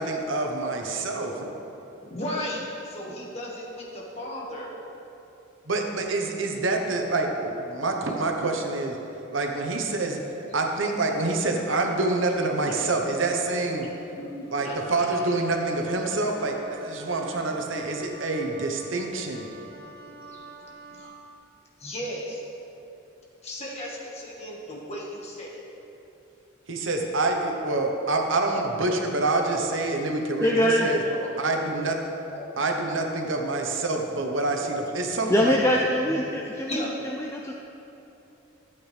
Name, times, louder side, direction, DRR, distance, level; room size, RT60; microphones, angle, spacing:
voice 1, 0.0-1.5 5.7-8.9 9.3-10.2 10.5-13.8 14.5-19.5 26.7-31.0 31.4-32.0 32.6-35.8, right 2 dB, 75° right, 2 dB, 1.0 m, -27 dB
voice 2, 2.0-4.8 8.0-8.1 8.6-8.7 10.5-10.6 12.6-12.7 13.0-13.1 13.9-15.2 20.3-20.4 20.9-21.1 21.8-22.4 23.4-25.6 30.7-30.8 31.1-31.3 32.3-32.6 33.9-34.0 34.5-35.1 36.1-36.9, equal, 30° left, -4 dB, 1.5 m, -36 dB
Wind instrument woodwind instrument, 14.8-21.2, right 2 dB, 50° right, 1.1 m, -46 dB
voice 3, 30.4-30.9 35.3-36.8 37.3-37.5, equal, 15° left, 0 dB, 0.4 m, -23 dB
13.0 x 8.4 x 3.3 m, 2.9 s
head